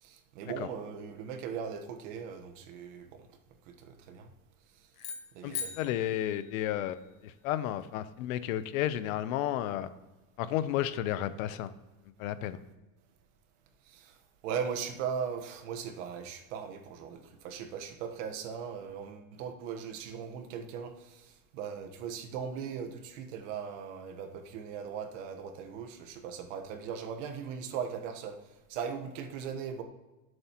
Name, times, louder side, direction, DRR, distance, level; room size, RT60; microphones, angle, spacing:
voice 1, 0.0-3.3 3.7-4.3 5.3-5.9 13.8-14.2 14.4-28.4 28.7-29.8, right 7 dB, 60° right, 6 dB, 1.2 m, -39 dB
sound 1, 4.9-7.3, left 7 dB, 20° left, 0.3 m, -42 dB
voice 2, 5.4-7.0 7.4-9.9 10.4-11.7 12.2-12.6, left 12 dB, 85° left, 14 dB, 0.8 m, -32 dB
16.5 x 7.9 x 3.0 m, 1.1 s
cardioid pair, 180°, 40 cm